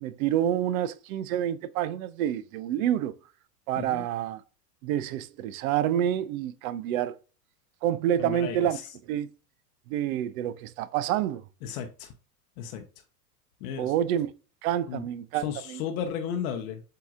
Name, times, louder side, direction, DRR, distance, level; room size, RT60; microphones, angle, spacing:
voice 1, 0.0-3.1 3.7-4.4 4.8-7.1 7.8-9.3 9.9-11.4 13.8-14.3 14.6-15.8, right 11 dB, 60° right, 0.6 m, -28 dB
voice 2, 8.2-8.8 11.6-12.1 12.6-12.8 13.6-13.9 14.9-15.0 15.4-16.8, left 8 dB, 60° left, 0.8 m, -34 dB
7.6 x 2.8 x 2.4 m
hypercardioid pair, 95°, 48 cm